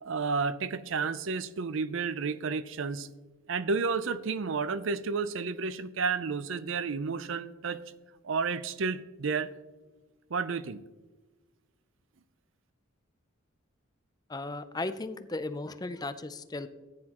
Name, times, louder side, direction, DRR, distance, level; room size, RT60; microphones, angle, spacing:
voice 1, 0.0-3.1 3.5-7.8 8.2-9.5 10.3-10.8, right 5 dB, 65° right, 15 dB, 0.5 m, -31 dB
voice 2, 14.3-16.7, left 2 dB, 20° left, 11 dB, 0.4 m, -36 dB
14.5 x 9.6 x 2.9 m, 1.2 s
head